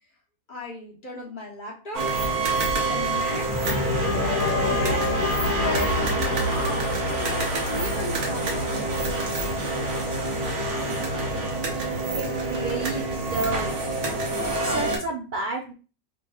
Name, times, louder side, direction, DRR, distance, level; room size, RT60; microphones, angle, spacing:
voice 1, 0.5-2.1 2.8-3.5 4.5-9.0, left 3 dB, 40° left, -2 dB, 1.0 m, -36 dB
sound 1, 1.9-15.0, right 2 dB, 80° right, 1.5 m, -27 dB
sound 2, 3.5-13.1, left 3 dB, 85° left, 1.2 m, -31 dB
voice 2, 12.2-13.7 14.6-15.7, right 3 dB, 60° right, 0 dB, 0.5 m, -30 dB
5.0 x 3.0 x 2.3 m, 0.35 s
omnidirectional pair, 1.6 m